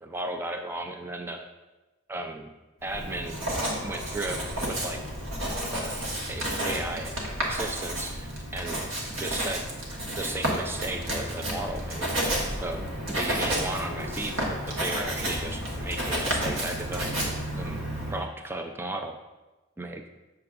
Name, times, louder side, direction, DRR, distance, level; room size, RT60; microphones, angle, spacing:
voice 1, 0.0-1.5 2.1-2.5 2.8-3.4 3.8-5.0 5.7-6.0 6.3-8.8 9.2-9.7 10.1-12.1 12.6-17.2 17.5-19.2 19.8-20.0, right 2 dB, 10° right, 4 dB, 0.3 m, -35 dB
Writing, 2.8-18.2, right 1 dB, 70° right, 1.5 m, -31 dB
7.5 x 6.7 x 2.4 m, 1.1 s
head